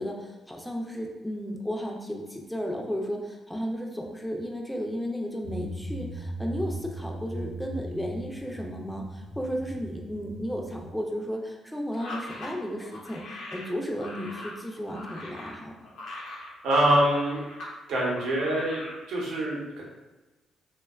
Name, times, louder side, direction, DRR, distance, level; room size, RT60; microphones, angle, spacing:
voice 1, 0.0-15.7, equal, 5° left, 1 dB, 0.3 m, -34 dB
sound 1, 5.4-10.9, right 1 dB, 45° right, 0.6 m, -38 dB
sound 2, 11.9-17.7 18.0-19.0, left 1 dB, 75° left, 0.6 m, -41 dB
voice 2, 16.6-17.4 17.9-18.8 19.1-19.8, right 1 dB, 80° right, -4 dB, 0.7 m, -24 dB
2.6 x 2.2 x 2.2 m, 1.1 s
cardioid pair, 90°, 0 cm